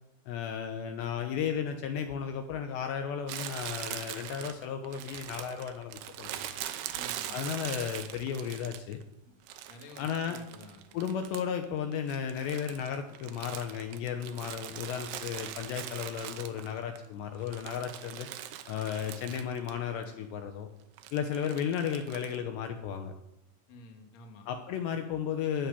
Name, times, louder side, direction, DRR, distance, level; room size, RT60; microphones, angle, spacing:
voice 1, 0.3-6.5 7.3-9.0 10.0-10.4 10.9-18.3 18.7-20.7 21.1-23.1 24.5-25.7, left 8 dB, 75° left, 6 dB, 2.8 m, -34 dB
Crumpling crinkling, 3.3-9.0 9.5-11.7 11.9-17.0 17.4-19.8 20.0-20.1 21.0-22.4, right 12 dB, 80° right, 2.4 m, -42 dB
voice 2, 6.9-7.5 9.3-9.4 9.7-11.0 23.7-24.5, left 2 dB, 50° left, 3 dB, 2.2 m, -51 dB
15.0 x 6.5 x 9.7 m, 0.84 s
omnidirectional pair, 5.6 m